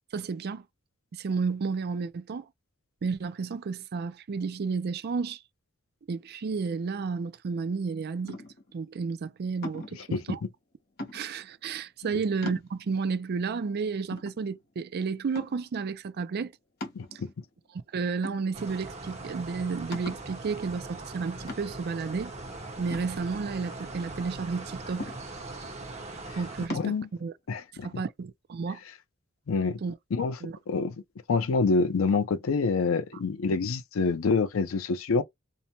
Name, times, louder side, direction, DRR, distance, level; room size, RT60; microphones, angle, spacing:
voice 1, 0.1-0.6 1.1-2.4 3.0-5.4 6.1-8.4 8.7-10.4 11.1-16.5 17.1-17.2 17.7-22.3 22.8-25.1 26.4-27.0 27.2-27.3 27.8-28.8 29.8-29.9 30.4-30.6, right 5 dB, 50° right, 0.4 m, -32 dB
sound 1, 8.2-8.7 9.6-10.1 11.0-11.5 12.0-12.1 12.4-13.1 13.6-13.7 14.1-14.9 15.3-15.8 16.8-17.5 18.2-18.9 19.2-19.3 19.9-20.3 21.5-22.0 22.9-23.8 25.0-25.6 26.7-27.0, left 2 dB, 50° left, 0.8 m, -40 dB
voice 2, 16.9-17.3 26.7-27.1 27.5-27.9 29.5-29.8 30.1-30.4 30.7-31.0 31.3-35.2, left 4 dB, 90° left, 0.5 m, -26 dB
sound 2, 18.5-26.7, right 2 dB, 35° right, 1.0 m, -41 dB
2.6 x 2.1 x 2.9 m
head